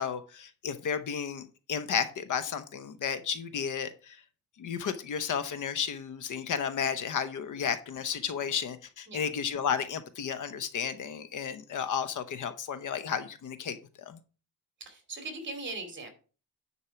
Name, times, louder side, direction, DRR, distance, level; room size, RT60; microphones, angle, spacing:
voice 1, 0.0-4.2 4.6-13.8 14.1-14.2, left 7 dB, 60° left, 11 dB, 0.9 m, -33 dB
voice 2, 14.8-16.1, right 3 dB, 30° right, 6 dB, 2.7 m, -39 dB
9.9 x 4.6 x 5.8 m, 0.37 s
cardioid pair, 155°, 35 cm